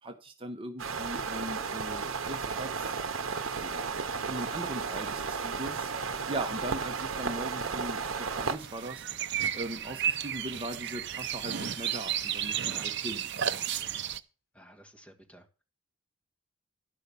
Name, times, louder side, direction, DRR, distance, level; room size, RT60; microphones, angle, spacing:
voice 1, 0.0-3.0 3.6-3.8 4.2-13.7, right 1 dB, 25° right, 4 dB, 0.9 m, -40 dB
sound 1, 0.8-8.6, right 5 dB, 85° right, 0.9 m, -34 dB
sound 2, 8.4-14.2, right 9 dB, 60° right, 0.6 m, -33 dB
sound 3, 9.5-13.8, left 3 dB, 60° left, 3.2 m, -55 dB
voice 2, 12.6-13.0 14.5-15.5, equal, 5° left, 3 dB, 1.7 m, -53 dB
11.5 x 5.6 x 6.9 m, 0.34 s
head